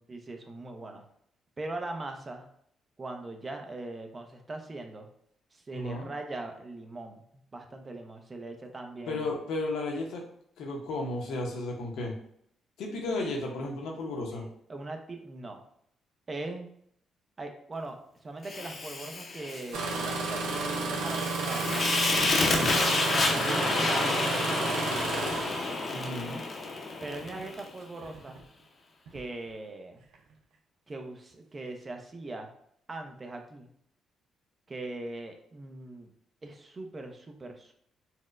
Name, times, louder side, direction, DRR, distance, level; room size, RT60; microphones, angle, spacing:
voice 1, 0.1-1.0 1.6-2.5 3.0-5.1 5.5-7.2 7.5-9.3 14.4-15.6 16.3-16.7 17.4-21.8 23.1-25.4 27.0-28.4 29.1-30.0 30.9-32.5 32.9-33.7 34.7-36.1 36.4-37.7, right 2 dB, 30° right, 4 dB, 0.5 m, -40 dB
voice 2, 5.7-6.1 9.1-10.2 10.6-12.1 12.8-14.5 22.4-22.8 25.9-26.4, left 2 dB, 80° left, 0 dB, 0.8 m, -34 dB
Fire, 18.4-27.7, left 3 dB, 45° left, 0.6 m, -30 dB
Engine starting, 19.7-26.2 27.1-27.4 28.0-28.4 29.1-29.2, right 4 dB, 85° right, 0.5 m, -32 dB
4.2 x 2.1 x 2.4 m, 0.68 s
cardioid pair, 90°, 0 cm